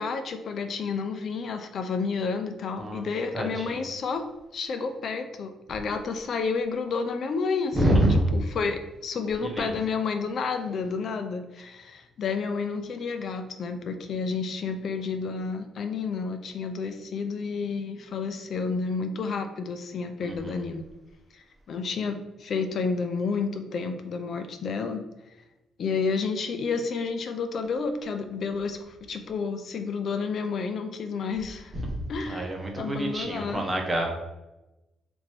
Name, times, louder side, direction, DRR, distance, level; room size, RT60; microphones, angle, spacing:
voice 1, 0.0-4.3 4.5-8.0 8.3-20.8 21.3-25.0 25.8-31.7 32.1-32.5 32.8-33.6, left 5 dB, 60° left, 8 dB, 0.5 m, -30 dB
voice 2, 3.3-3.9 7.7-8.3 9.4-9.8 20.2-20.6 31.7-32.0 32.2-34.1, right 1 dB, 20° right, 1 dB, 0.9 m, -26 dB
2.9 x 2.6 x 4.4 m, 0.99 s
cardioid pair, 90°, 0 cm